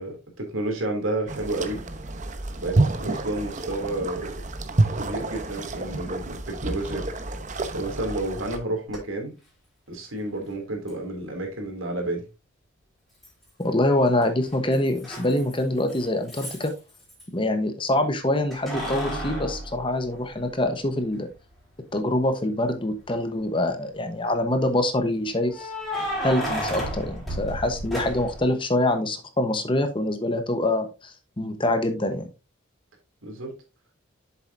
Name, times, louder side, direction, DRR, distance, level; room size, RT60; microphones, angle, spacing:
voice 1, 0.0-1.8 2.6-4.3 5.0-7.1 7.7-9.3 9.9-12.2 33.2-33.5, right 2 dB, 85° right, 2.8 m, -30 dB
sound 1, 1.3-8.6, right 2 dB, 35° right, 0.8 m, -28 dB
Keys jangling, 8.9-9.0 10.9-11.0 13.2-13.8 14.1-17.2 18.5-20.6 21.1-21.2 23.0-23.5 25.5-28.5, equal, ahead, 4.5 m, -33 dB
voice 2, 13.6-16.7 17.3-21.3 21.9-25.7 26.2-32.3, left 1 dB, 25° left, 1.0 m, -25 dB
7.9 x 7.2 x 2.6 m
head